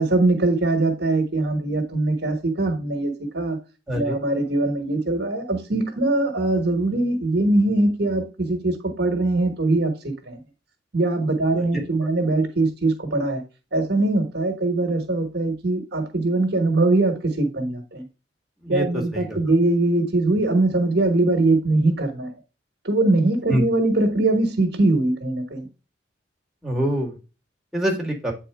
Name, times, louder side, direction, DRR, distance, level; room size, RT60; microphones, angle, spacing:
voice 1, 0.0-3.6 3.9-10.4 10.9-13.4 13.7-18.0 18.7-22.3 22.8-25.7, right 2 dB, 60° right, 1.3 m, -22 dB
voice 2, 3.9-4.2 11.6-11.8 18.6-19.4 23.5-23.6 26.6-27.2 27.7-28.3, right 1 dB, ahead, 1.9 m, -25 dB
8.3 x 4.2 x 3.4 m
head